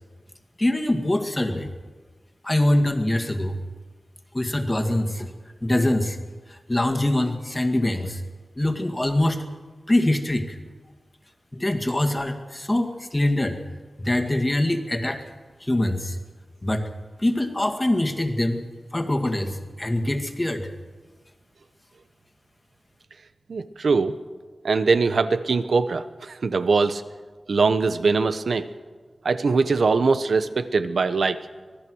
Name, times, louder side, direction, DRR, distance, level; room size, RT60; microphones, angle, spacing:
voice 1, 0.6-1.7 2.4-3.6 4.3-5.3 5.6-6.2 6.5-8.2 8.6-9.4 9.9-10.6 11.5-13.6 14.0-15.3 15.6-16.2 16.6-16.8 17.2-18.6 18.9-20.7, left 1 dB, 20° left, 5 dB, 2.1 m, -23 dB
voice 2, 23.5-24.2 24.6-27.0 27.5-28.7 29.2-31.5, right 4 dB, 75° right, 11 dB, 1.1 m, -22 dB
25.5 x 18.5 x 6.4 m, 1.4 s
wide cardioid pair, 110°, 0 cm